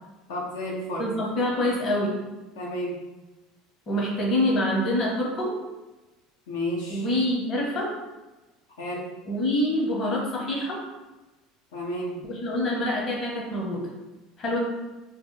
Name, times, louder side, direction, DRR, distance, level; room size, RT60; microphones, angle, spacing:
voice 1, 0.3-1.1 2.5-3.0 6.5-7.0 8.8-9.1 11.7-12.2, equal, 90° left, -3 dB, 0.6 m, -31 dB
voice 2, 1.0-2.2 3.9-5.6 6.9-7.9 9.3-10.8 12.2-13.9 14.4-14.6, left 1 dB, 40° left, -2 dB, 0.9 m, -26 dB
3.2 x 2.0 x 3.2 m, 1.1 s
supercardioid pair, 105°, 0 cm